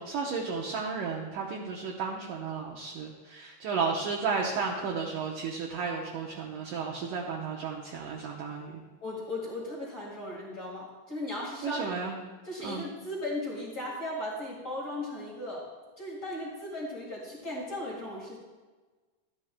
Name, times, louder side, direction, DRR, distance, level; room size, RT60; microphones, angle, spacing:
voice 1, 0.0-8.8 11.6-12.1 12.6-12.8, right 5 dB, 75° right, -1 dB, 2.1 m, -33 dB
voice 2, 9.0-11.8 12.4-15.6 16.0-18.4, left 1 dB, 50° left, -5 dB, 0.9 m, -36 dB
13.5 x 10.5 x 2.2 m, 1.3 s
omnidirectional pair, 4.5 m